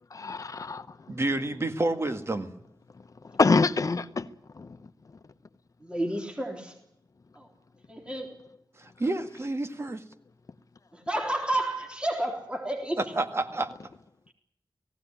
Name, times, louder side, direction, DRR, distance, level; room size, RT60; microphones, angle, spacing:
voice 1, 0.1-1.0 3.3-4.3 4.5-4.8, left 4 dB, 50° left, 1.0 m, -25 dB
voice 2, 1.1-2.5 8.8-10.0 13.0-13.7, right 2 dB, 35° right, 1.8 m, -29 dB
voice 3, 5.8-6.7 7.4-7.5 7.9-8.3 10.9-13.0, right 1 dB, 15° right, 3.9 m, -31 dB
18.5 x 16.5 x 10.0 m
wide cardioid pair, 100°, 7 cm